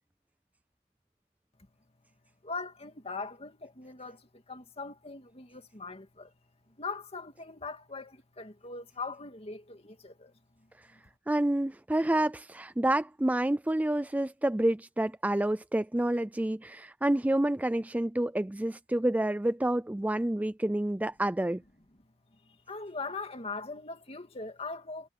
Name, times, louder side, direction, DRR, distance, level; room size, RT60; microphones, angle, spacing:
voice 1, 2.4-6.3 6.8-11.0 22.4-25.1, left 3 dB, 35° left, 2.2 m, -41 dB
voice 2, 11.3-21.6, right 1 dB, 10° right, 0.4 m, -28 dB
head